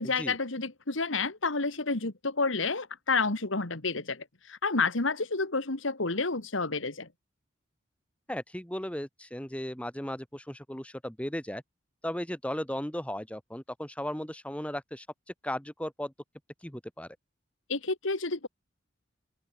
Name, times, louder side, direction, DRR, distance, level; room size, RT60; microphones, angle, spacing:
voice 1, 0.0-7.1 17.7-18.5, left 3 dB, 80° left, 2.2 m, -30 dB
voice 2, 8.3-11.6 12.0-15.1 15.4-16.1 16.6-17.1, left 1 dB, 5° left, 1.8 m, -36 dB
open air
head